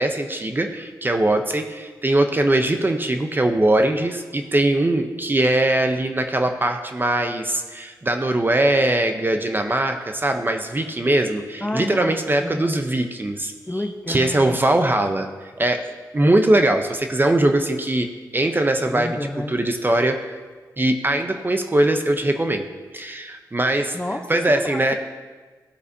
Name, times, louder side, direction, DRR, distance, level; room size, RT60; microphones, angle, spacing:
voice 1, 0.0-13.5 14.1-15.3 15.6-15.9 16.1-18.1 18.3-19.2 19.5-20.4 20.8-22.7 22.9-24.0 24.3-24.9, right 1 dB, 25° right, 6 dB, 0.7 m, -21 dB
voice 2, 11.6-12.1 12.4-12.8 13.7-14.6 18.9-19.6 23.9-24.9, left 1 dB, 15° left, 6 dB, 0.7 m, -30 dB
14.5 x 4.8 x 2.7 m, 1.4 s
cardioid pair, 50°, 8 cm